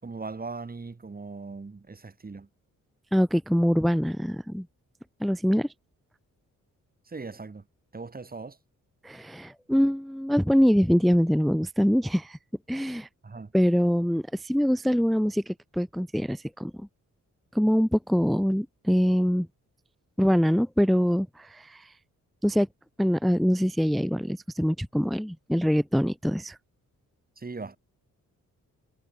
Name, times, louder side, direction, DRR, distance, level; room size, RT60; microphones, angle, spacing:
voice 1, 0.0-2.5 7.1-7.6 7.9-8.6 13.2-13.5 27.4-27.8, right 4 dB, 30° right, 4.9 m, -39 dB
voice 2, 3.1-4.7 5.2-5.7 9.0-12.4 12.7-13.1 13.5-16.7 17.5-19.5 20.2-21.9 22.4-22.7 23.0-26.6, equal, ahead, 0.6 m, -24 dB
cardioid pair, 105°, 31 cm